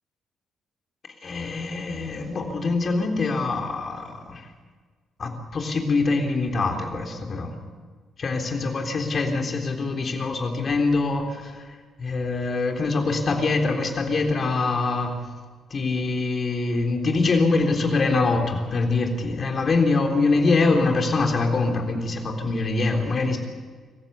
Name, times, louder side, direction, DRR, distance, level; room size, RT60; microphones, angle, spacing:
voice 1, 1.2-4.5 5.2-7.5 8.2-11.7 12.0-15.2 15.7-23.4, left 3 dB, 45° left, 3 dB, 3.7 m, -24 dB
25.5 x 15.0 x 8.3 m, 1.5 s
hypercardioid pair, 45°, 0 cm